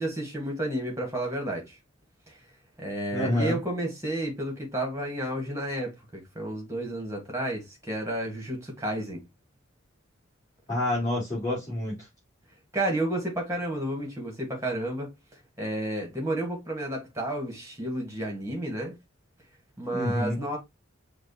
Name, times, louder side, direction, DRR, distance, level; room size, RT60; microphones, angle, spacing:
voice 1, 0.0-1.7 2.3-2.4 2.8-9.2 12.7-15.1 15.6-19.0 19.8-20.6, right 1 dB, 15° right, 1.6 m, -31 dB
voice 2, 3.1-3.6 10.7-12.1 19.9-20.4, left 1 dB, 15° left, 3.1 m, -28 dB
6.1 x 2.5 x 3.0 m
head